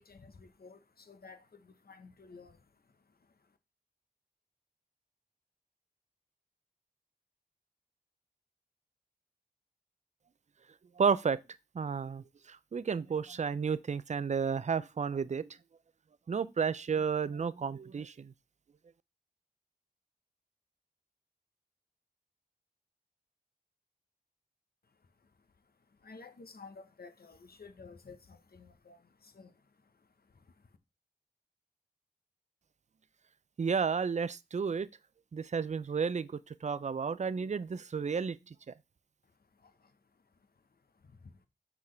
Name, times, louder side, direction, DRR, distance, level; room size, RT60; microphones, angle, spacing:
voice 1, 0.0-3.6 24.8-30.8 39.2-41.5, left 4 dB, 70° left, 0.9 m, -55 dB
voice 2, 11.0-11.4 11.7-15.6 16.3-18.3 33.6-34.9 35.3-38.7, right 6 dB, 45° right, 0.4 m, -32 dB
5.9 x 5.8 x 3.2 m
wide cardioid pair, 70°, 16 cm